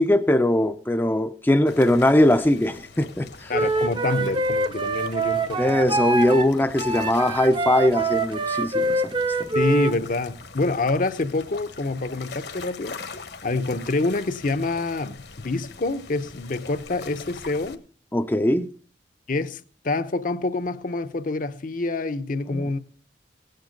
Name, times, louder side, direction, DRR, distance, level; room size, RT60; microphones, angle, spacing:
voice 1, 0.0-3.5 5.6-9.0 9.4-9.5 18.1-18.7 22.5-22.6, left 1 dB, 10° left, 0.5 m, -20 dB
sound 1, 1.7-17.7, left 4 dB, 65° left, 1.3 m, -43 dB
voice 2, 3.5-5.6 9.5-13.0 13.4-17.8 19.3-22.8, left 3 dB, 50° left, 0.8 m, -26 dB
Wind instrument woodwind instrument, 3.5-6.5 6.8-9.9, right 2 dB, 25° right, 0.7 m, -25 dB
17.0 x 9.1 x 5.2 m
head